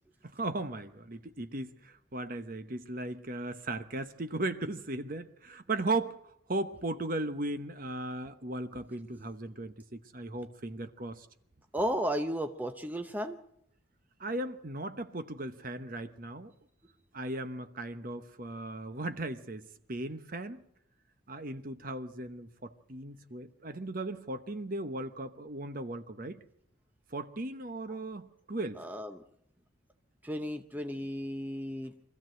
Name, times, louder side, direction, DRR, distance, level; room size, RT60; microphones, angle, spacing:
voice 1, 0.2-6.2 6.5-11.3 14.2-16.5 17.1-20.6 21.3-26.4 27.1-28.9, right 2 dB, 45° right, 1.0 m, -37 dB
voice 2, 11.7-13.4 28.8-29.2 30.2-31.9, equal, 10° right, 0.7 m, -34 dB
24.0 x 14.5 x 7.7 m
head